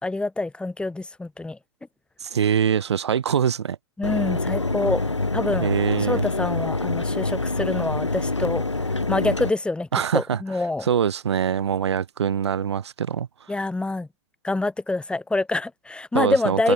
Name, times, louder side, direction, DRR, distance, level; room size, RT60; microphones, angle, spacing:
voice 1, 0.0-1.6 4.0-5.0 5.3-5.7 6.0-9.9 10.1-10.9 13.5-14.1 14.4-16.7, left 2 dB, 5° left, 4.2 m, -26 dB
voice 2, 2.2-3.8 5.6-6.3 9.9-10.4 10.8-13.3 16.1-16.7, right 8 dB, 70° right, 3.1 m, -23 dB
Mechanisms, 4.0-9.5, left 2 dB, 90° left, 5.1 m, -26 dB
figure-of-eight pair, 100°, 15 cm